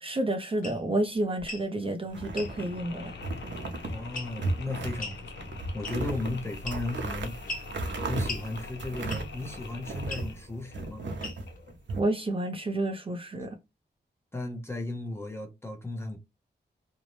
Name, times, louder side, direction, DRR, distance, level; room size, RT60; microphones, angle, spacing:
voice 1, 0.0-3.2 12.0-13.6, right 1 dB, 30° right, 0.5 m, -30 dB
sound 1, 0.6-0.8 1.4-1.7 2.3-2.5 4.1-4.5 5.0-5.2 5.8-6.2 6.6-7.0 7.5-7.7 8.3-8.5 9.1-9.4 10.1-10.3 11.2-11.6, left 2 dB, 50° left, 0.8 m, -38 dB
Mechanisms, 2.1-11.8, left 3 dB, 80° left, 0.6 m, -44 dB
sound 2, 2.1-2.8 3.2-4.0 4.3-5.0 5.4-10.3 10.7-12.0, right 2 dB, 85° right, 0.6 m, -35 dB
voice 2, 3.9-7.4 8.0-11.0 14.3-16.2, left 2 dB, 15° left, 0.7 m, -35 dB
2.6 x 2.0 x 2.9 m
wide cardioid pair, 125°, 18 cm